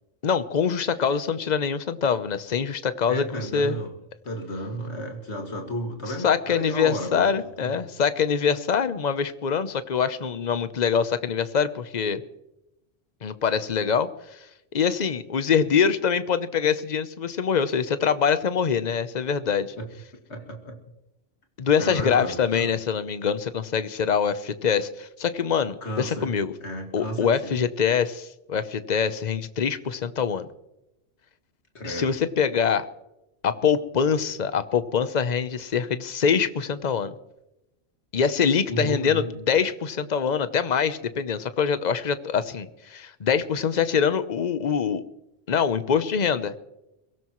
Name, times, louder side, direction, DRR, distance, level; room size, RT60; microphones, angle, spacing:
voice 1, 0.2-3.8 6.2-12.2 13.2-14.4 14.7-19.7 21.6-26.5 26.9-30.5 31.8-32.9 33.4-37.1 38.1-45.0 45.5-46.5, left 6 dB, 40° left, 12 dB, 0.8 m, -24 dB
voice 2, 3.1-4.0 4.2-7.9 19.8-19.9 20.3-20.8 21.8-22.8 25.8-26.3 26.6-27.6 31.7-32.1 38.7-39.2, equal, 65° left, 2 dB, 2.5 m, -33 dB
23.0 x 17.0 x 3.1 m, 0.91 s
omnidirectional pair, 1.2 m